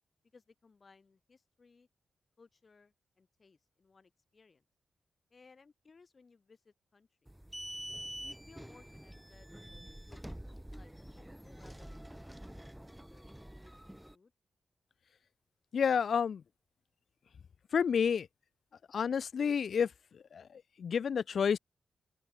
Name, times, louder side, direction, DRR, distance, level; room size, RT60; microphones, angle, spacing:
voice 1, 0.3-1.9 2.4-4.6 5.3-7.3 8.2-9.5 10.1-12.0 12.4-14.3, left 4 dB, 50° left, 4.8 m, -63 dB
sound 1, 7.3-14.1, right 1 dB, 10° right, 3.2 m, -47 dB
voice 2, 15.7-16.4 17.7-18.3 18.9-19.9 20.3-20.4 20.8-21.6, left 7 dB, 70° left, 0.4 m, -29 dB
open air
supercardioid pair, 40°, 0 cm